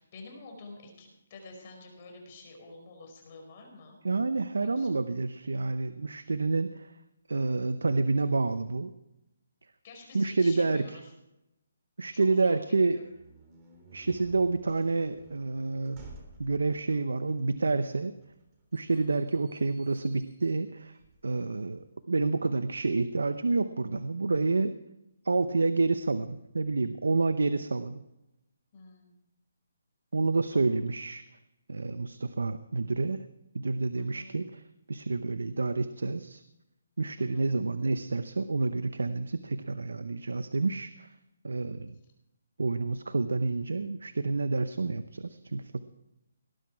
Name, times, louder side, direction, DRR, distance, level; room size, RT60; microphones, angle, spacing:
voice 1, 0.0-4.0 4.8-5.0 9.8-11.1 12.1-12.6 12.9-13.0 14.1-14.3 18.9-19.2 28.7-29.1 30.5-30.8 34.0-34.3 37.2-37.5, left 3 dB, 40° left, 2 dB, 5.1 m, -49 dB
voice 2, 4.0-6.9 7.3-8.9 10.1-10.9 12.0-13.0 13.9-16.1 16.4-18.1 18.7-21.0 21.2-24.7 25.2-28.0 30.1-31.2 31.7-33.2 33.5-34.6 34.9-36.4 37.0-41.1 41.4-41.9 42.6-45.8, right 3 dB, 90° right, 11 dB, 0.8 m, -28 dB
sound 1, 13.0-21.7, right 2 dB, 20° right, 3.3 m, -54 dB
18.5 x 10.5 x 4.7 m, 0.89 s
hypercardioid pair, 155°, 0 cm